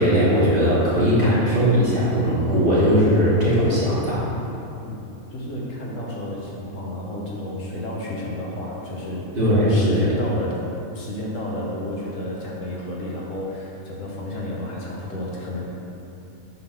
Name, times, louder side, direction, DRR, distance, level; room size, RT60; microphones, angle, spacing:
voice 1, 0.0-4.3 9.4-10.1, equal, 40° right, -8 dB, 1.8 m, -19 dB
voice 2, 4.8-10.6 10.9-15.6, left 1 dB, 65° left, -4 dB, 1.4 m, -31 dB
7.7 x 3.7 x 5.9 m, 2.8 s
omnidirectional pair, 1.5 m